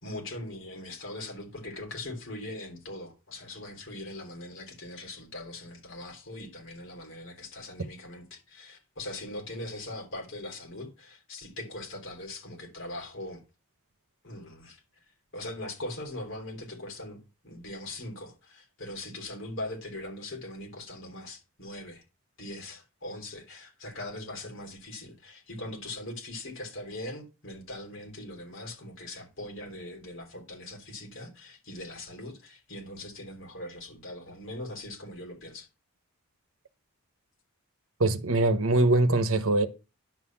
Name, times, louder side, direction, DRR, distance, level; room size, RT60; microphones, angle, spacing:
voice 1, 0.0-13.4 14.2-14.8 15.3-22.0 22.4-35.7, left 1 dB, 60° left, 3.6 m, -41 dB
voice 2, 38.0-39.7, right 2 dB, 70° right, 1.0 m, -23 dB
10.5 x 4.2 x 7.2 m
head